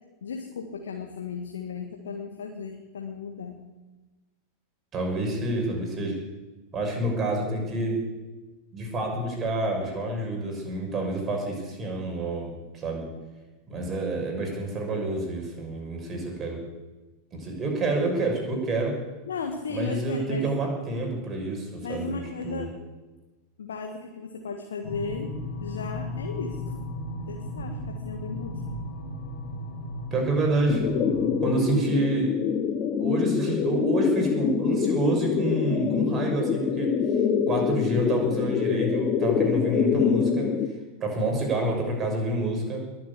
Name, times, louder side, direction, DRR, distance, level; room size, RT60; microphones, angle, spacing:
voice 1, 0.2-3.6 19.3-20.5 21.8-22.8 23.6-26.8 27.3-28.8, left 5 dB, 65° left, 3 dB, 1.7 m, -35 dB
voice 2, 4.9-6.2 6.7-8.0 8.7-13.1 13.7-16.6 17.3-19.0 19.7-22.6 30.1-30.8 31.4-32.3 33.0-36.9 37.5-40.5 41.0-42.8, right 2 dB, 25° right, 1 dB, 6.2 m, -28 dB
sound 1, 24.8-31.5, left 1 dB, 50° left, 3.7 m, -35 dB
sound 2, 30.7-40.7, left 7 dB, 30° left, 1.4 m, -25 dB
21.5 x 7.9 x 8.6 m, 1.2 s
figure-of-eight pair, 90°, 0 cm